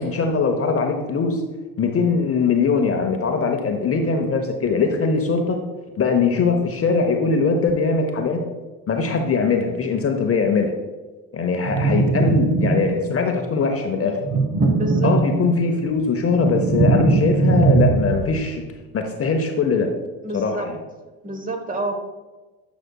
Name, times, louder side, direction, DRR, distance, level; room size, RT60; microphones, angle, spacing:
voice 1, 0.0-1.4 1.8-5.6 6.0-8.4 8.9-10.7 11.3-14.2 15.0-18.6 18.9-19.9 20.3-20.8, left 4 dB, 30° left, 4 dB, 0.8 m, -21 dB
sound 1, 11.6-13.2 14.2-15.7 16.1-18.4, right 3 dB, 40° right, 1.2 m, -20 dB
voice 2, 14.7-15.1 20.2-20.7 21.2-21.9, right 2 dB, 20° right, 4 dB, 1.1 m, -28 dB
9.8 x 5.1 x 2.3 m, 1.2 s
hypercardioid pair, 70°, 45 cm